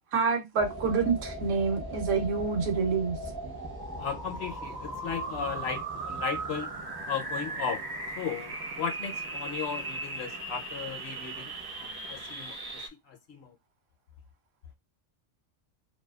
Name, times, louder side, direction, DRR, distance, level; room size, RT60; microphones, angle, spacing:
voice 1, 0.1-3.2, right 5 dB, 80° right, 1.0 m, -27 dB
sound 1, 0.6-12.9, right 2 dB, 30° right, 0.5 m, -37 dB
voice 2, 4.0-6.7 7.1-7.8 8.2-13.5, left 7 dB, 65° left, 0.8 m, -36 dB
2.6 x 2.2 x 2.2 m
omnidirectional pair, 1.3 m